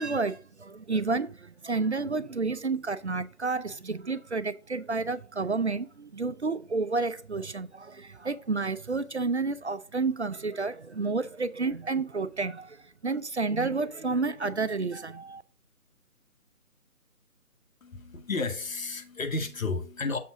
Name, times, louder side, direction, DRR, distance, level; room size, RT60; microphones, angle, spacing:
voice 1, 0.0-15.4, right 4 dB, 50° right, 0.5 m, -30 dB
voice 2, 17.8-20.2, left 3 dB, 60° left, 1.6 m, -32 dB
7.2 x 5.9 x 3.7 m
figure-of-eight pair, 155°, 45 cm